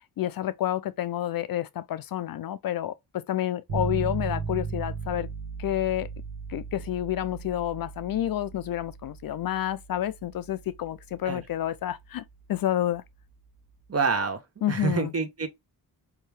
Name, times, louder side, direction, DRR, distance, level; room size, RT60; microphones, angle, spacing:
voice 1, 0.2-5.3 5.6-6.1 6.5-12.2 12.5-13.0 14.6-15.1, left 12 dB, 60° left, 0.5 m, -29 dB
sound 1, 3.7-13.6, right 5 dB, 75° right, 1.5 m, -37 dB
voice 2, 13.9-14.4 14.7-15.5, right 4 dB, 35° right, 1.0 m, -27 dB
3.5 x 2.8 x 3.3 m
cardioid pair, 50°, 40 cm